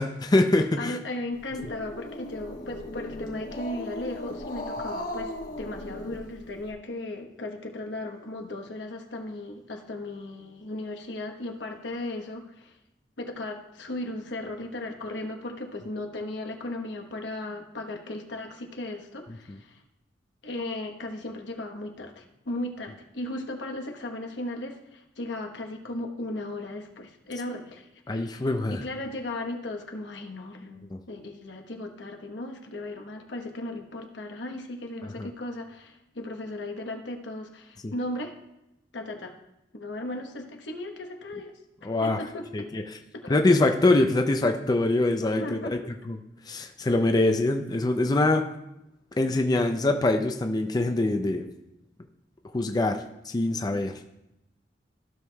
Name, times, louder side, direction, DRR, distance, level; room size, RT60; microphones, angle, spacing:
voice 1, 0.0-1.0 19.5-19.6 28.1-28.8 30.9-31.0 35.0-35.3 37.8-37.9 41.8-42.2 42.5-42.8 43.3-45.6 46.1-46.2 46.5-48.5 49.2-51.5 52.5-53.9, left 2 dB, 20° left, 5 dB, 0.4 m, -24 dB
voice 2, 0.6-12.7 13.2-19.8 20.4-38.3 38.9-39.4 39.7-41.5 41.8-42.7 43.2-43.6 45.4-45.9, left 1 dB, 80° left, 3 dB, 1.1 m, -36 dB
Growling, 1.3-6.7, left 1 dB, 50° left, 1.3 m, -37 dB
15.0 x 6.2 x 2.3 m, 0.88 s
head